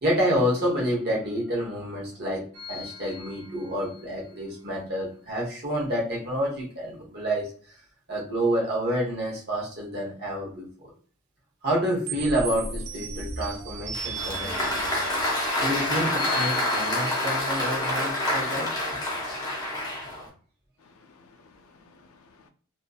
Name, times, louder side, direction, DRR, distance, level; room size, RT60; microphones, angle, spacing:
voice 1, 0.0-7.5 8.1-10.9 11.6-15.0 15.6-18.7, equal, 45° right, 1.0 m, -28 dB
sound 1, 2.5-4.1 12.1-17.8, right 1 dB, 80° right, 0.5 m, -37 dB
Applause, 13.9-20.3, left 1 dB, 15° left, 0.6 m, -27 dB
voice 2, 20.8-22.5, left 3 dB, 75° left, 0.4 m, -56 dB
2.5 x 2.2 x 2.3 m
head